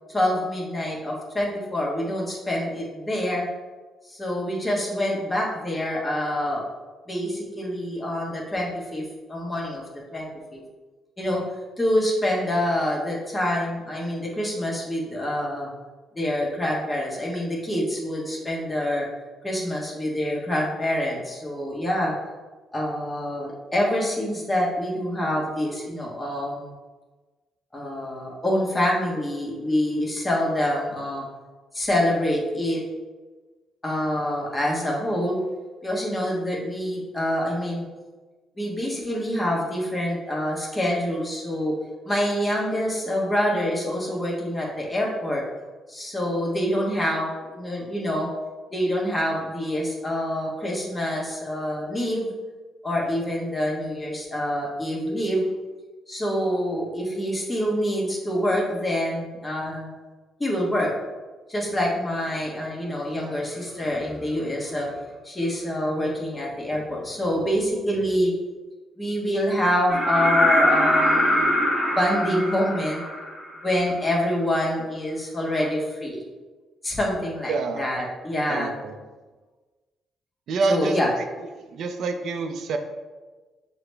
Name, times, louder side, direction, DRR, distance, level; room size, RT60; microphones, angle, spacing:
voice 1, 0.1-3.5 4.0-6.6 7.1-9.8 10.1-10.6 11.2-11.4 11.8-15.7 16.1-19.1 19.4-22.1 22.7-26.7 27.7-31.2 31.7-32.8 33.8-35.4 35.8-37.8 38.6-41.8 42.0-45.4 45.9-48.3 48.7-52.3 52.8-55.4 56.1-59.9 60.4-60.9 61.5-65.0 65.2-68.3 69.0-71.5 72.0-73.0 73.6-76.2 76.8-78.7 80.6-81.1, equal, 15° left, -3 dB, 1.1 m, -26 dB
sound 1, 69.9-73.7 75.6-75.7, left 1 dB, 20° right, 0.8 m, -22 dB
voice 2, 77.5-77.8 78.5-79.0 80.5-81.0 81.7-82.8, right 4 dB, 70° right, 6 dB, 0.4 m, -26 dB
5.9 x 2.1 x 3.3 m, 1.3 s
cardioid pair, 90°, 0 cm